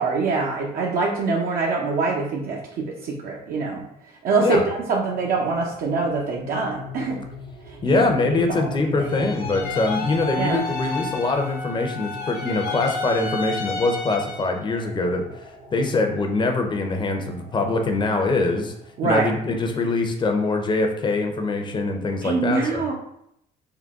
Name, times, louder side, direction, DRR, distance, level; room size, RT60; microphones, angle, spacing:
voice 1, 0.0-3.8 4.2-7.2 7.7-8.0 8.3-9.1 10.3-10.6 19.0-19.3 22.2-22.9, right 4 dB, 60° right, -2 dB, 0.6 m, -24 dB
sound 1, 4.9-19.8, left 4 dB, 85° right, 0.9 m, -41 dB
voice 2, 7.8-15.2 15.7-18.7 19.0-22.8, left 3 dB, 25° left, 4 dB, 0.6 m, -23 dB
sound 2, 9.0-11.7 11.9-14.7, left 4 dB, 70° left, 0.8 m, -33 dB
sound 3, 9.6-13.9, left 2 dB, 15° right, 0.3 m, -34 dB
3.7 x 2.2 x 3.5 m, 0.76 s
cardioid pair, 110°, 17 cm